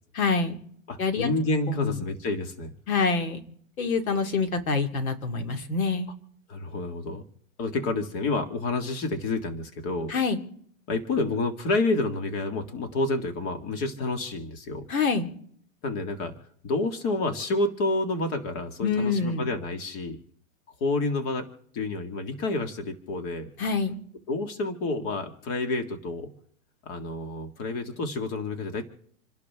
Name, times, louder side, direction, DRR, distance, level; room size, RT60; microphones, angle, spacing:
voice 1, 0.1-0.6 1.0-1.3 1.7-2.0 2.9-3.4 3.8-6.1 10.1-10.4 14.9-15.3 18.8-19.5 23.6-23.9, left 4 dB, 85° left, 6 dB, 2.5 m, -26 dB
voice 2, 0.9-2.7 6.5-7.2 7.6-10.1 10.9-14.9 15.8-16.3 16.6-20.2 20.8-21.5 21.7-23.5 24.3-26.3 26.9-28.9, left 2 dB, 35° left, 6 dB, 2.1 m, -29 dB
28.5 x 11.5 x 3.6 m, 0.65 s
hypercardioid pair, 140°, 41 cm